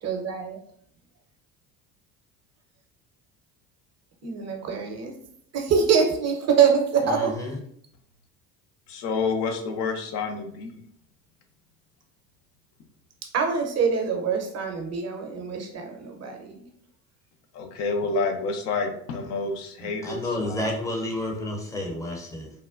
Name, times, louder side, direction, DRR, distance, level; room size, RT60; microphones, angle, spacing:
voice 1, 0.0-0.6 4.2-5.1 5.5-7.3 13.3-16.6, right 6 dB, 35° right, 3 dB, 0.6 m, -24 dB
voice 2, 7.0-7.6 19.8-22.5, left 1 dB, 5° left, 1 dB, 0.5 m, -31 dB
voice 3, 8.9-10.8 17.5-20.7, left 4 dB, 65° left, 4 dB, 0.7 m, -29 dB
3.5 x 2.1 x 2.3 m, 0.67 s
hypercardioid pair, 65°, 48 cm